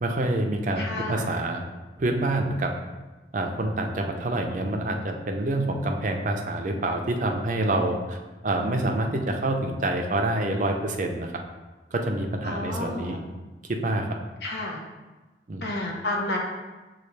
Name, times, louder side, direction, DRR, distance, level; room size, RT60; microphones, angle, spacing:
voice 1, 0.0-1.6 2.0-2.7 3.3-8.2 8.4-11.3 11.9-13.2 13.7-14.1 15.5-15.7, right 1 dB, 45° right, 3 dB, 0.5 m, -27 dB
voice 2, 0.8-1.3 12.4-13.2 14.4-14.8 15.6-16.4, left 2 dB, 70° left, -1 dB, 0.9 m, -30 dB
6.7 x 2.4 x 3.2 m, 1.2 s
head